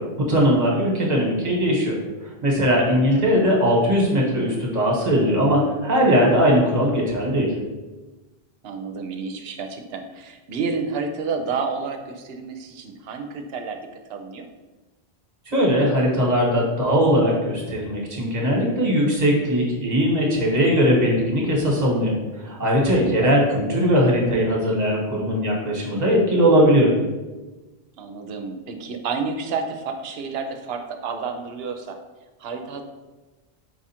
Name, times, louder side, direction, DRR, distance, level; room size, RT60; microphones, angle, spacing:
voice 1, 0.2-1.9 2.4-7.5 15.5-22.1 22.4-26.9, equal, 45° right, -2 dB, 1.2 m, -19 dB
voice 2, 8.6-13.8 14.1-14.5 23.2-23.4 28.0-32.0 32.4-32.8, right 5 dB, 75° right, 5 dB, 0.8 m, -30 dB
4.9 x 2.4 x 4.2 m, 1.1 s
omnidirectional pair, 1.0 m